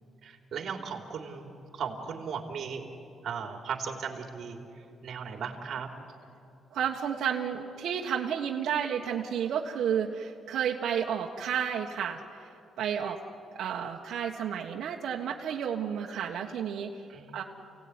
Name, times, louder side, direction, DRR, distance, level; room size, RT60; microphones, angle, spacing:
voice 1, 0.2-2.9 3.2-4.6 5.0-5.9 17.1-17.4, right 6 dB, 55° right, 3 dB, 3.2 m, -37 dB
voice 2, 6.7-12.5 12.8-13.2 13.5-16.9 17.3-17.4, right 8 dB, 70° right, -1 dB, 1.4 m, -31 dB
29.0 x 17.5 x 9.7 m, 2.7 s
cardioid pair, 140°, 0 cm